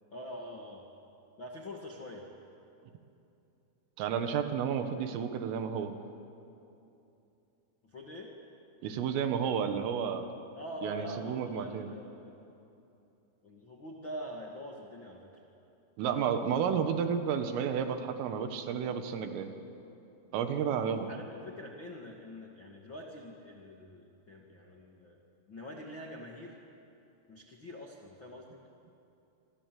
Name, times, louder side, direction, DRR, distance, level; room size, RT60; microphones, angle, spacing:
voice 1, 0.1-0.9 1.4-2.3 7.8-8.3 10.6-12.4 13.4-15.3 20.6-25.2 25.5-26.6 27.3-28.6, equal, 75° left, -2 dB, 1.1 m, -45 dB
voice 2, 4.0-5.9 8.8-10.3 10.8-11.9 16.0-19.5 20.3-21.1, right 7 dB, 75° right, 7 dB, 4.1 m, -31 dB
28.0 x 25.5 x 7.7 m, 2.8 s
omnidirectional pair, 6.0 m